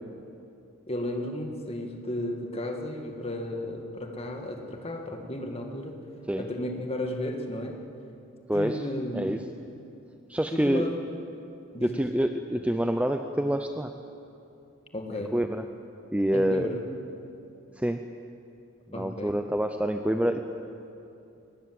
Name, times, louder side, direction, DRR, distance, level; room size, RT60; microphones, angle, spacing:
voice 1, 0.9-6.0 6.4-7.8 8.5-9.3 10.5-11.0 11.7-12.0 14.9-15.3 16.3-16.8 18.9-19.3 20.3-20.4, left 1 dB, 30° left, 3 dB, 2.0 m, -34 dB
voice 2, 8.5-8.9 9.1-9.4 10.3-10.9 11.8-13.9 15.1-15.6 16.1-16.7 17.7-18.0 18.9-20.4, equal, 5° right, 7 dB, 0.6 m, -27 dB
23.0 x 19.5 x 7.8 m, 2.7 s
head